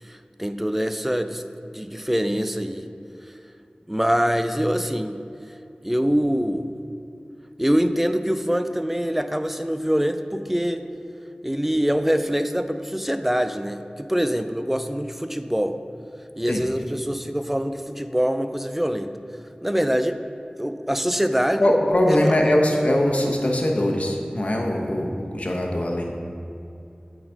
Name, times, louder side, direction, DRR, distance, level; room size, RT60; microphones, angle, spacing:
voice 1, 0.0-1.4 1.7-2.9 3.9-5.2 5.8-6.7 7.6-10.9 11.4-15.8 16.4-19.1 19.6-20.2 20.6-21.6 22.1-22.5, equal, 10° right, 9 dB, 0.4 m, -24 dB
voice 2, 21.6-26.2, left 1 dB, 55° left, 1 dB, 0.9 m, -21 dB
8.6 x 4.1 x 4.6 m, 2.7 s
wide cardioid pair, 50°, 3 cm